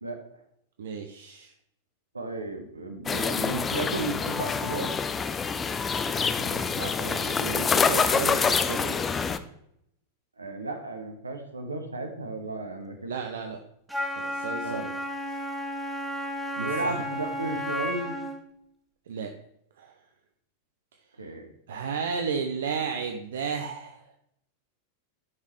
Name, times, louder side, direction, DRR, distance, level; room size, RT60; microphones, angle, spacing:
voice 1, 0.8-1.5 6.2-9.0 13.1-13.6 14.1-14.9 16.6-17.0 19.1-19.3 19.8-19.9 21.7-24.1, right 6 dB, 60° right, 4 dB, 0.6 m, -34 dB
voice 2, 2.1-5.0 10.4-13.2 14.6-14.9 16.6-18.2 21.2-21.5, right 2 dB, 80° right, 5 dB, 1.2 m, -34 dB
sound 1, 3.1-9.4, left 5 dB, 20° left, 0.5 m, -26 dB
Wind instrument woodwind instrument, 13.9-18.4, equal, ahead, 1.3 m, -33 dB
10.5 x 5.6 x 3.1 m, 0.76 s
figure-of-eight pair, 90°, 0 cm